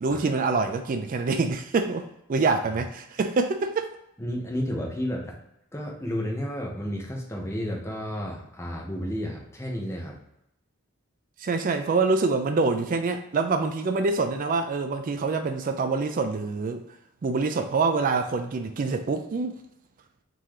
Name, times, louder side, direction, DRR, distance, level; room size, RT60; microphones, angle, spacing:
voice 1, 0.0-3.9 11.4-16.8 17.2-19.6, right 4 dB, 40° right, 0.3 m, -26 dB
voice 2, 4.2-5.3 5.7-10.2, equal, 10° left, 0.7 m, -31 dB
3.8 x 2.7 x 4.7 m
head